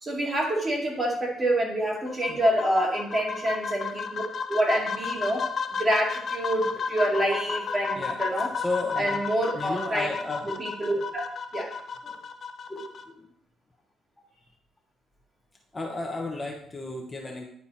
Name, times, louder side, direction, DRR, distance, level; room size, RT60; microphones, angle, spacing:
voice 1, 0.0-4.2 4.5-5.5 5.8-8.5 9.0-10.1 10.6-11.2 11.5-11.7, right 1 dB, 25° right, -2 dB, 2.3 m, -27 dB
sound 1, 2.1-13.0, left 5 dB, 40° left, 0.6 m, -33 dB
voice 2, 7.9-9.2 9.5-10.5 12.0-12.2 12.7-13.3 15.7-17.4, left 2 dB, 15° left, 0 dB, 0.9 m, -34 dB
10.0 x 4.5 x 4.3 m, 0.67 s
cardioid pair, 125°, 0 cm